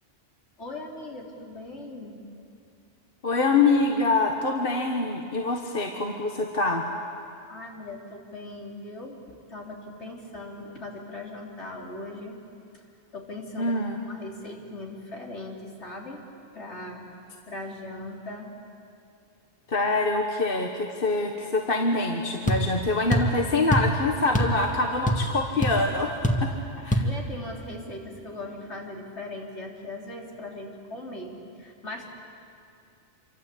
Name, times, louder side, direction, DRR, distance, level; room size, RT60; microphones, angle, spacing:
voice 1, 0.6-2.2 7.5-12.4 13.1-13.8 14.1-16.3 16.5-17.0 17.5-18.5 26.8-32.1, left 2 dB, 70° left, -1 dB, 3.8 m, -39 dB
voice 2, 3.2-6.8 13.6-14.0 19.7-26.5 26.8-27.0, left 3 dB, 50° left, 2 dB, 1.6 m, -25 dB
sound 1, 22.5-22.7 23.1-23.4 23.7-23.9 24.3-24.6 24.8-25.4 25.6-25.8 26.2-26.5 26.9-27.1, equal, 5° left, 1.8 m, -23 dB
27.5 x 24.5 x 8.4 m, 2.4 s
omnidirectional pair, 1.2 m